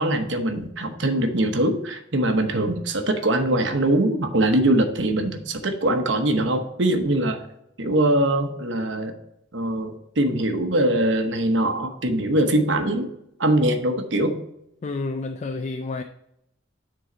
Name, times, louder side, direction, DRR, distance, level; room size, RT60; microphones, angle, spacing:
voice 1, 0.0-7.4 7.8-9.1 9.5-13.1 13.4-14.4, right 1 dB, 65° right, 1.0 m, -22 dB
voice 2, 14.8-16.0, left 3 dB, 35° left, 0.3 m, -29 dB
9.7 x 3.9 x 3.9 m
head